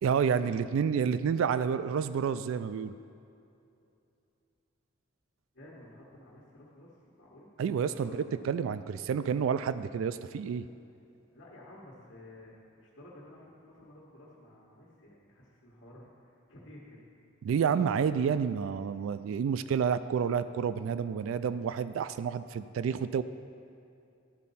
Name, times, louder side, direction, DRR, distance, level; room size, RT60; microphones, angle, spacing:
voice 1, 0.0-2.9 7.6-10.6 17.4-23.2, right 7 dB, 80° right, 13 dB, 0.3 m, -29 dB
voice 2, 5.5-7.5 7.9-8.4 11.3-17.0, left 1 dB, 70° left, -8 dB, 1.4 m, -53 dB
12.0 x 4.2 x 5.5 m, 2.7 s
head